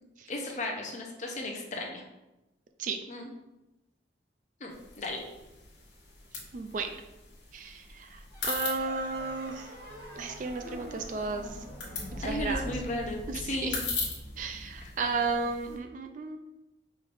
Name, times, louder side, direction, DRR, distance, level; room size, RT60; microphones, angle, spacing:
voice 1, 0.3-2.0 3.1-3.3 4.6-5.2 12.2-13.8 14.8-14.9, left 1 dB, 40° left, 1 dB, 0.7 m, -35 dB
sound 1, 4.7-15.8, left 3 dB, 75° left, 1.3 m, -40 dB
voice 2, 6.5-6.9 7.5-9.7 10.2-11.6 12.2-12.7 13.3-13.8 14.4-16.4, right 4 dB, 45° right, 6 dB, 0.3 m, -34 dB
sound 2, 8.3-13.6, equal, 70° right, 1.2 m, -47 dB
5.7 x 3.2 x 2.6 m, 0.97 s
head